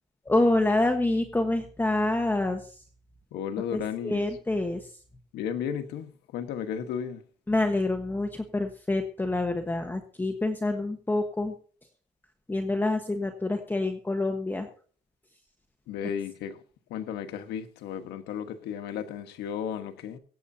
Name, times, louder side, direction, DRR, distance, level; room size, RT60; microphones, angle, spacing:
voice 1, 0.3-2.6 3.7-4.8 7.5-11.5 12.5-14.7, left 2 dB, 10° left, 1.3 m, -27 dB
voice 2, 3.3-4.2 5.3-7.2 15.9-16.6 16.9-20.2, left 8 dB, 80° left, 1.4 m, -34 dB
23.5 x 8.5 x 2.8 m
cardioid pair, 110°, 17 cm